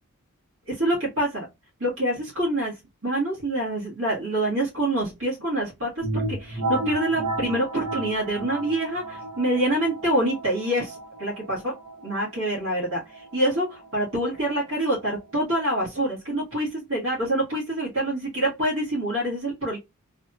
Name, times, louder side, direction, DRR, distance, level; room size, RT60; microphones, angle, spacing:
voice 1, 0.7-1.5 1.8-2.7 3.0-11.7 12.0-19.8, right 1 dB, 65° right, -6 dB, 1.6 m, -26 dB
sound 1, 6.0-15.6, right 2 dB, 90° right, 1.5 m, -34 dB
3.3 x 2.8 x 2.3 m, 0.21 s
head